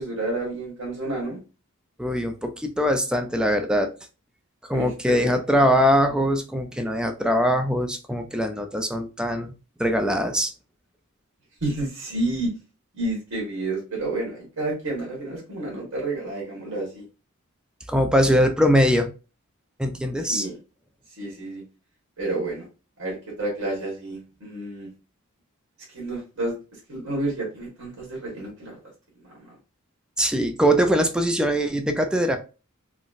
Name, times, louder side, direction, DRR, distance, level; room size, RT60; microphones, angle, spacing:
voice 1, 0.0-1.4 4.7-5.4 11.6-12.5 12.9-17.0 20.3-20.6 21.2-21.6 22.2-22.6 23.0-24.9 25.9-26.6 26.9-28.8 29.2-29.4, right 2 dB, 80° right, -3 dB, 1.5 m, -30 dB
voice 2, 2.0-3.9 4.7-9.5 9.8-10.5 17.9-19.1 19.8-20.5 30.2-32.4, equal, 5° right, 6 dB, 0.3 m, -22 dB
3.9 x 2.1 x 2.4 m, 0.31 s
head